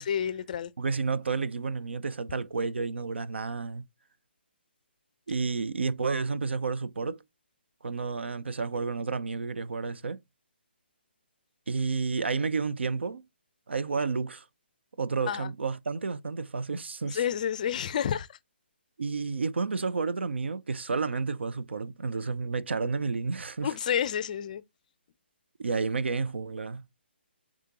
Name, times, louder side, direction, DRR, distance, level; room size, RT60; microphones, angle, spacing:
voice 1, 0.0-0.7 15.3-15.5 17.1-18.3 23.6-24.6, left 9 dB, 45° left, 0.4 m, -29 dB
voice 2, 0.8-3.8 5.3-7.2 7.8-10.2 11.7-13.2 13.7-14.4 15.0-17.2 19.0-23.7 25.6-26.9, right 4 dB, 80° right, 0.5 m, -31 dB
5.0 x 3.6 x 2.8 m
hypercardioid pair, 145°, 6 cm